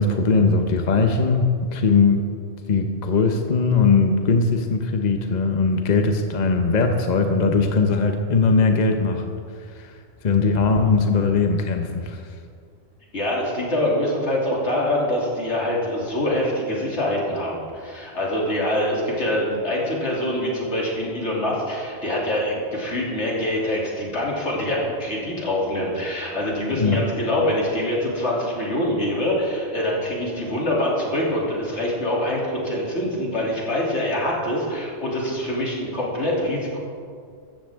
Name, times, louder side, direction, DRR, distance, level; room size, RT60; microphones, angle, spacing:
voice 1, 0.0-2.3 2.7-9.3 9.7-12.2 26.7-27.0, left 4 dB, 40° left, 5 dB, 0.9 m, -20 dB
voice 2, 13.1-36.8, left 1 dB, 80° left, -4 dB, 3.2 m, -24 dB
15.5 x 13.5 x 3.6 m, 2.2 s
omnidirectional pair, 1.1 m